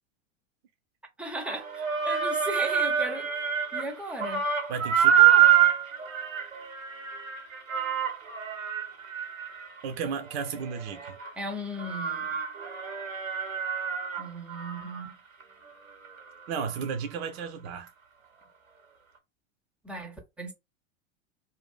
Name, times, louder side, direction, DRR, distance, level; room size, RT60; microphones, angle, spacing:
voice 1, 1.2-4.4 11.4-12.3 14.2-15.1 19.8-20.5, right 1 dB, 5° right, 0.6 m, -37 dB
sound 1, 1.5-3.9 4.2-11.3 11.8-15.1 15.4-15.5 16.0-16.1, right 9 dB, 85° right, 1.1 m, -26 dB
voice 2, 4.7-5.4 9.8-11.2 16.5-17.9, right 6 dB, 50° right, 0.6 m, -34 dB
2.6 x 2.4 x 3.6 m
figure-of-eight pair, 90°, 40 cm